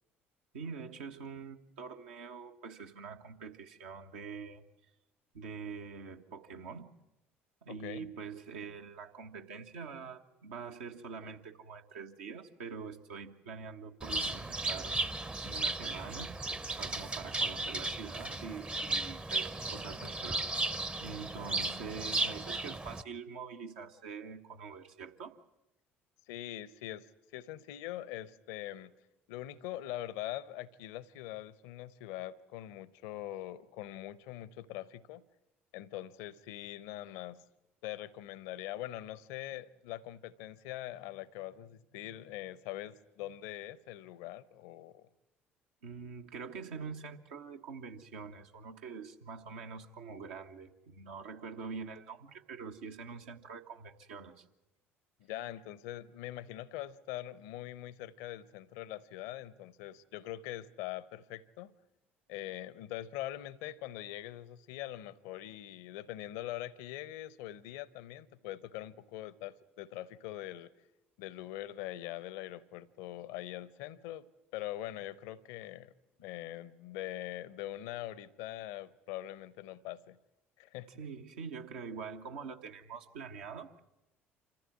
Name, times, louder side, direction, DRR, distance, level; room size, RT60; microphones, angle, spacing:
voice 1, 0.5-4.6 5.3-6.9 7.6-15.1 15.4-20.6 21.0-25.4 45.8-54.5 80.9-83.8, right 5 dB, 70° right, 1.2 m, -45 dB
voice 2, 7.7-8.1 26.3-28.9 29.3-35.2 35.7-37.4 37.8-45.1 55.2-61.7 62.3-70.7 71.2-74.3 74.5-75.9 76.2-80.2 80.6-80.9, left 14 dB, 65° left, 0.7 m, -43 dB
Bird, 14.0-23.0, right 2 dB, 15° right, 0.7 m, -35 dB
26.0 x 14.5 x 9.5 m
figure-of-eight pair, 55°, 7 cm